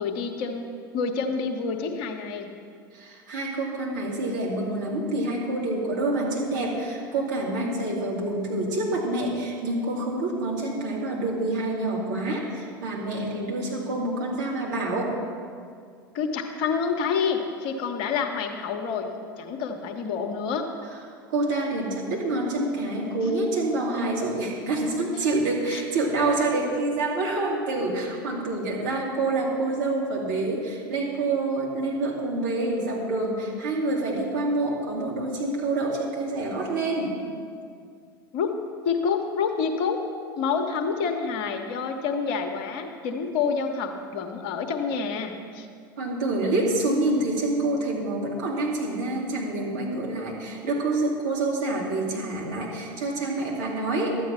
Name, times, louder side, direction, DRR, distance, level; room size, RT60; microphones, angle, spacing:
voice 1, 0.0-2.5 16.1-20.7 25.7-25.8 38.3-38.6 38.8-40.0 40.4-45.7, left 5 dB, 50° left, 5 dB, 1.1 m, -28 dB
voice 2, 2.9-15.2 21.3-37.2 46.0-54.2, right 2 dB, 60° right, -3 dB, 2.8 m, -27 dB
12.5 x 8.5 x 5.8 m, 2.2 s
figure-of-eight pair, 80°, 12 cm